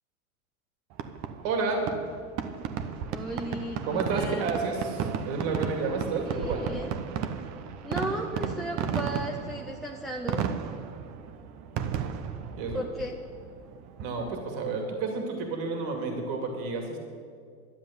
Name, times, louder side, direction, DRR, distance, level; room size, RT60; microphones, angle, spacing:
Fireworks, 0.9-14.5, right 8 dB, 40° right, 1.0 m, -34 dB
voice 1, 1.4-1.8 3.8-6.7 12.6-12.8 14.0-17.0, right 4 dB, 55° right, 2 dB, 2.6 m, -30 dB
voice 2, 3.1-4.4 6.2-6.9 7.8-10.5 12.7-13.1, equal, ahead, 1 dB, 0.3 m, -35 dB
12.0 x 7.7 x 9.7 m, 2.2 s
supercardioid pair, 125°, 43 cm